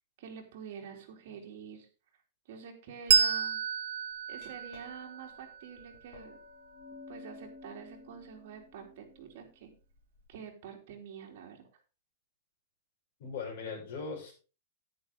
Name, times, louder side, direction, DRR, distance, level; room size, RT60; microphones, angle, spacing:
voice 1, 0.2-1.9 2.5-3.6 4.3-6.4 7.1-9.7 10.3-11.6, right 7 dB, 50° right, 1 dB, 3.4 m, -47 dB
Bell, 3.1-6.2, right 7 dB, 70° right, 0.8 m, -30 dB
Glass, 4.1-10.3, left 3 dB, 40° left, 5.0 m, -53 dB
voice 2, 13.2-14.3, left 5 dB, 55° left, -1 dB, 6.7 m, -39 dB
10.0 x 10.0 x 3.7 m, 0.34 s
supercardioid pair, 175°, 0 cm